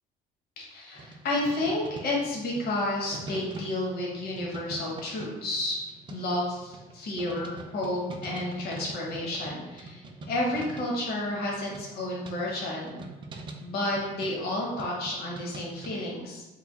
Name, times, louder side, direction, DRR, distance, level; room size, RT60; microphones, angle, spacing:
voice 1, 0.6-5.8 6.1-13.0 13.6-16.5, left 1 dB, 65° left, -3 dB, 0.9 m, -31 dB
sound 1, 1.0-15.9, right 2 dB, 30° right, 0.4 m, -45 dB
3.2 x 2.2 x 3.6 m, 1.1 s
cardioid pair, 110°, 17 cm